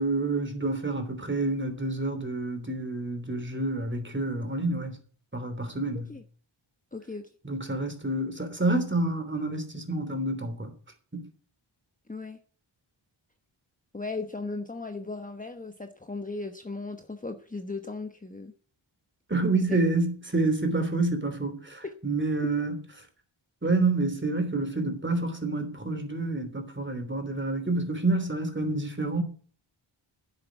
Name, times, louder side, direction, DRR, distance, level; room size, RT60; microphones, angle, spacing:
voice 1, 0.0-5.0 5.3-6.1 7.4-10.7 11.1-11.3 19.3-22.8 23.6-29.2, right 2 dB, 25° right, 3.2 m, -28 dB
voice 2, 6.9-7.3 12.1-12.4 13.9-18.5 19.7-19.8 21.8-21.9, left 3 dB, 15° left, 1.1 m, -37 dB
10.5 x 7.9 x 8.1 m
wide cardioid pair, 75°, 49 cm